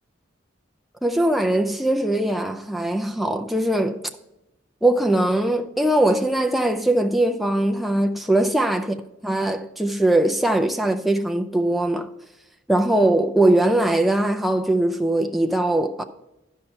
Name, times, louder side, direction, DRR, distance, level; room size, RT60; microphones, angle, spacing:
voice 1, 1.0-4.0 4.8-8.9 9.2-12.1 12.7-16.0, right 1 dB, ahead, 0.4 m, -21 dB
11.5 x 5.5 x 4.4 m
head